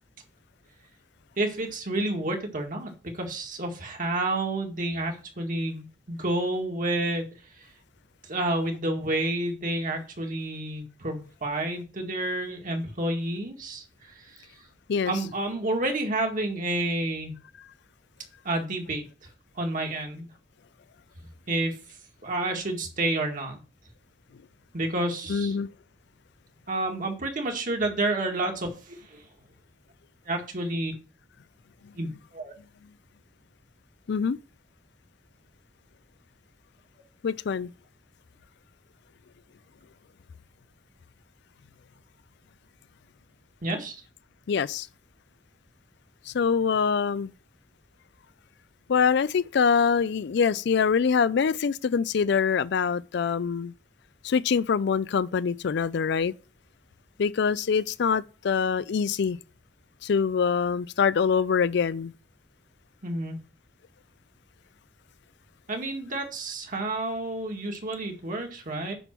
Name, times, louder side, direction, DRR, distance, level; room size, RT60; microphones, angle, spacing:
voice 1, 1.4-7.2 8.3-13.8 14.2-14.4 15.1-17.3 18.5-19.1 19.6-20.3 21.5-21.8 22.2-23.6 24.7-25.6 26.7-29.2 30.3-30.9 31.9-32.5 43.6-44.0 63.0-63.4 65.7-68.9, right 2 dB, 45° right, 1.9 m, -29 dB
voice 2, 14.9-15.3 25.3-25.7 31.8-32.2 34.1-34.4 37.2-37.7 44.5-44.9 46.3-47.3 48.9-53.7 54.2-56.3 57.2-59.4 60.0-62.1, left 6 dB, 65° left, 0.4 m, -24 dB
9.9 x 3.6 x 6.0 m
head